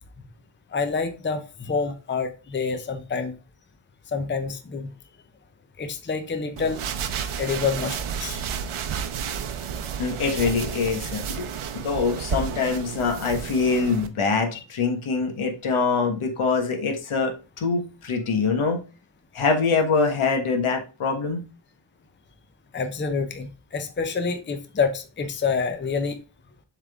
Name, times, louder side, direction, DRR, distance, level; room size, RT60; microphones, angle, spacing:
voice 1, 0.7-3.4 4.1-4.9 5.8-6.8 7.4-8.4 22.7-26.2, left 5 dB, 25° left, 0.6 m, -27 dB
sound 1, 6.6-14.1, right 8 dB, 75° right, 0.8 m, -31 dB
voice 2, 10.0-11.5 11.7-18.8 19.3-21.4, left 4 dB, 80° left, 1.5 m, -24 dB
7.3 x 3.7 x 3.5 m
wide cardioid pair, 130°, 50 cm